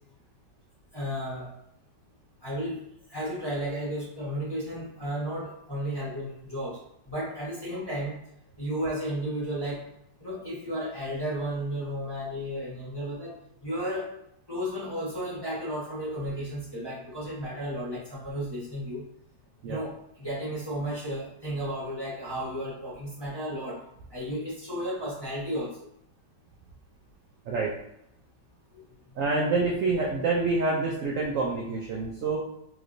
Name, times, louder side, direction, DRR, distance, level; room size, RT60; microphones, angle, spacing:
voice 1, 0.9-1.5 2.4-2.8 3.1-8.2 8.6-9.9 10.2-14.1 14.5-19.1 19.7-23.8 24.1-25.9 28.7-28.9, equal, 15° left, -9 dB, 1.1 m, -33 dB
voice 2, 29.1-32.4, right 3 dB, 75° right, -3 dB, 0.7 m, -27 dB
3.2 x 2.9 x 2.5 m, 0.77 s
omnidirectional pair, 1.9 m